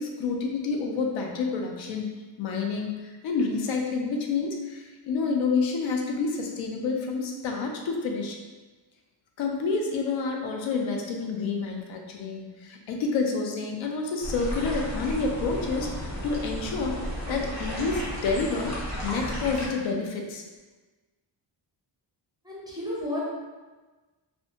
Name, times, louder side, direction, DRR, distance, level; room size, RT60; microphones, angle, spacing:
voice 1, 0.0-2.1 2.4-8.3 9.4-17.0 17.3-18.8 19.0-20.4, left 4 dB, 90° left, 2 dB, 0.5 m, -29 dB
sound 1, 14.2-19.7, equal, 35° left, 0.7 m, -33 dB
voice 2, 22.4-23.2, left 1 dB, 10° right, -7 dB, 0.4 m, -32 dB
2.5 x 2.2 x 2.8 m, 1.3 s
wide cardioid pair, 160°, 45 cm